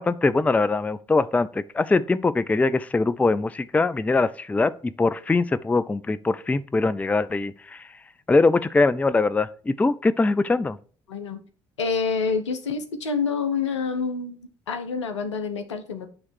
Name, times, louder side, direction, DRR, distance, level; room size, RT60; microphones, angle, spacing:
voice 1, 0.0-7.9 8.3-10.8, left 3 dB, 10° left, 0.4 m, -22 dB
voice 2, 11.1-11.4 11.8-16.1, left 5 dB, 80° left, 0.7 m, -27 dB
8.7 x 3.2 x 6.1 m
figure-of-eight pair, 50°, 15 cm